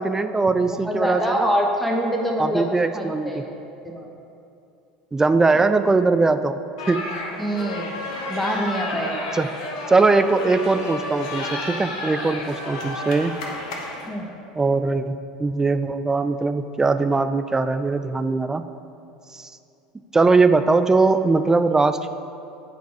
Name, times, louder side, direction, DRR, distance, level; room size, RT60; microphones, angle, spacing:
voice 1, 0.0-1.5 2.4-3.4 5.1-6.6 6.9-7.1 9.3-9.5 9.9-13.3 14.6-18.6 19.3-19.5 20.1-22.1, right 3 dB, 15° right, 10 dB, 0.3 m, -20 dB
voice 2, 0.8-2.7 2.9-3.5 3.8-4.1 5.5-5.6 7.4-8.0 8.3-9.3 14.0-14.3, equal, ahead, 0 dB, 1.1 m, -25 dB
sound 1, 6.8-14.1, left 2 dB, 65° left, 1.0 m, -31 dB
8.1 x 4.1 x 4.7 m, 2.7 s
hypercardioid pair, 75°, 4 cm